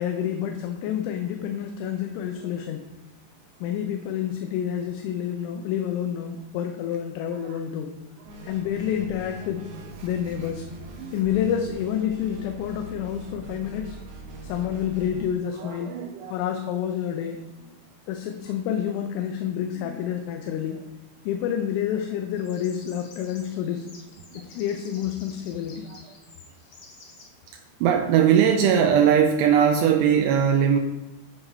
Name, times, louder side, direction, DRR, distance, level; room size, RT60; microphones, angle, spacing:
voice 1, 0.0-2.9 3.6-7.9 8.4-9.7 10.0-10.7 11.1-14.0 14.4-16.0 16.3-17.4 18.1-20.8 21.3-23.9 24.4-25.9, left 9 dB, 85° left, 5 dB, 3.2 m, -28 dB
sound 1, 8.2-15.3, right 1 dB, 70° right, 2.0 m, -42 dB
voice 2, 15.6-16.4 19.8-19.9 24.3-24.4 25.9-26.0 27.5-30.8, right 8 dB, 90° right, 4 dB, 2.4 m, -21 dB
sound 2, 22.4-27.3, left 3 dB, 60° left, 2.2 m, -50 dB
9.9 x 4.8 x 5.3 m, 1.0 s
omnidirectional pair, 5.5 m